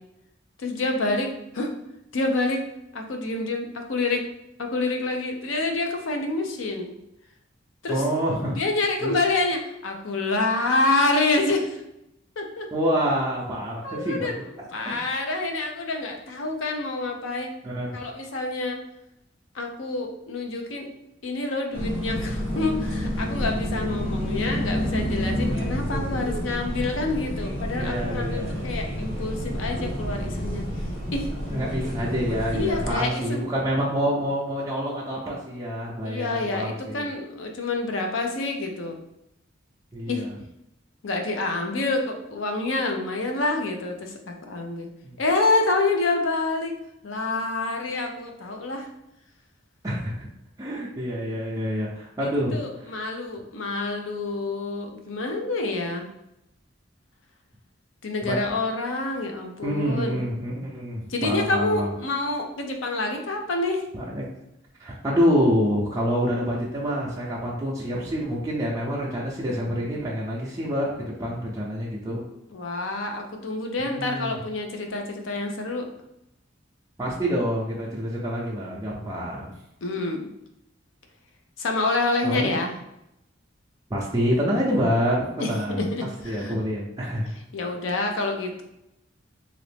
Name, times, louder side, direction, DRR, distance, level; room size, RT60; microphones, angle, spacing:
voice 1, 0.6-1.7 2.1-2.6 2.9-4.2 4.6-6.9 7.8-8.0 8.5-11.8 12.4-12.7 13.8-14.3 14.7-17.5 17.9-18.8 19.5-20.9 21.2-30.6 31.1-31.3 32.5-33.4 36.0-39.0 40.1-40.2 41.0-44.9 45.2-46.7 47.0-48.9 52.2-56.1 58.0-60.2 61.1-63.8 72.5-75.8 79.8-80.3 81.6-82.7 85.4-86.5 87.5-88.6, left 2 dB, 85° left, 3 dB, 0.6 m, -27 dB
voice 2, 7.9-8.6 9.0-9.1 12.7-14.3 14.8-15.0 17.6-18.0 27.7-28.7 31.5-37.1 39.9-40.3 45.0-45.2 49.8-50.3 50.6-53.0 58.2-58.4 59.6-61.9 63.9-64.2 64.8-72.2 73.8-74.4 77.0-79.5 82.2-82.5 83.9-85.9 86.2-87.3, equal, 15° right, -5 dB, 0.5 m, -27 dB
sound 1, 21.7-32.9, equal, 30° left, 0.9 m, -29 dB
2.9 x 2.5 x 3.3 m, 0.86 s
head